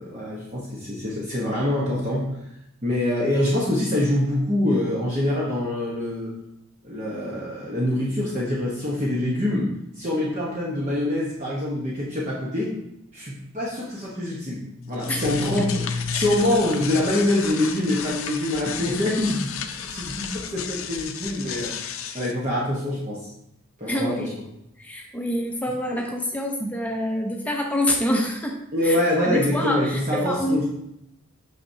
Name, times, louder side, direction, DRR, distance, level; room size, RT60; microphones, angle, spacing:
voice 1, 0.0-2.3 2.8-6.3 6.8-9.7 10.0-12.7 13.1-14.6 14.9-23.3 23.8-24.2 28.7-30.6, left 1 dB, 35° right, -6 dB, 1.1 m, -25 dB
sound 1, 14.8-22.3, left 7 dB, 80° left, 0.5 m, -32 dB
voice 2, 23.9-24.3 24.8-28.5 28.8-30.6, left 1 dB, 5° left, 0 dB, 0.7 m, -26 dB
6.6 x 5.9 x 2.8 m, 0.82 s
head